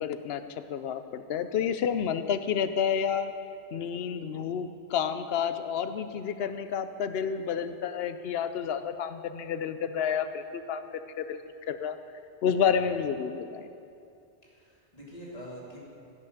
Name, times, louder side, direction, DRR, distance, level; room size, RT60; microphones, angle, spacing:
voice 1, 0.0-3.3 3.7-10.8 11.2-11.4 11.7-12.0 12.4-13.7, left 7 dB, 65° left, 10 dB, 0.8 m, -30 dB
voice 2, 12.5-12.8 14.4-15.8, equal, 35° left, -5 dB, 2.6 m, -46 dB
15.5 x 5.7 x 6.6 m, 2.6 s
omnidirectional pair, 1.1 m